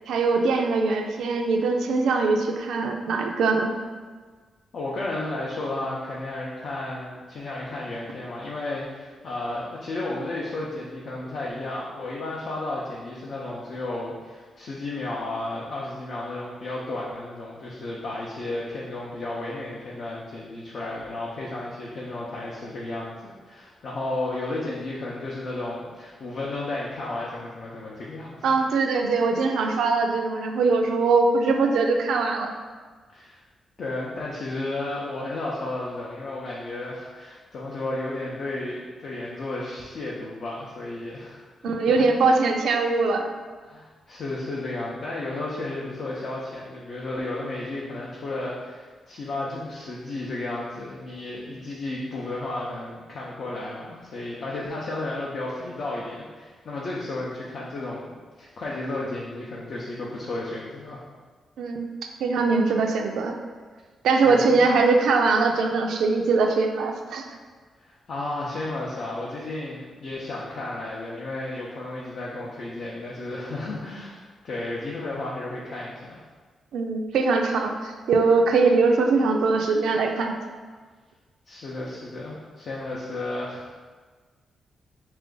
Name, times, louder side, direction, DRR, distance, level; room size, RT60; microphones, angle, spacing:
voice 1, 0.1-3.7 28.4-32.5 41.6-43.3 61.6-61.9 62.2-63.3 64.0-67.3 76.7-80.4, right 4 dB, 85° right, 3 dB, 0.3 m, -22 dB
voice 2, 4.7-28.6 33.1-33.4 33.8-42.0 43.6-61.0 64.2-64.6 67.8-76.2 81.5-83.8, left 2 dB, 55° left, -5 dB, 0.5 m, -33 dB
3.3 x 2.5 x 3.7 m, 1.4 s
cardioid pair, 105°, 0 cm